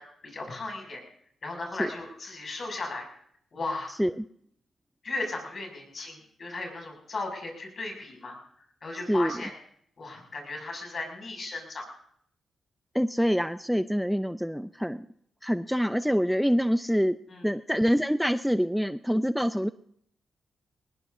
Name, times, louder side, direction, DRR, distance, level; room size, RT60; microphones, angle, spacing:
voice 1, 0.2-1.0 1.4-3.1 3.5-3.9 5.0-8.4 8.8-9.5 10.0-11.8 17.3-17.4, left 3 dB, 50° left, 2 dB, 6.7 m, -36 dB
voice 2, 3.9-4.3 9.1-9.3 12.9-15.1 15.4-17.2 17.4-19.7, equal, ahead, 12 dB, 0.5 m, -26 dB
21.0 x 19.5 x 2.7 m, 0.67 s
cardioid pair, 70°, 0 cm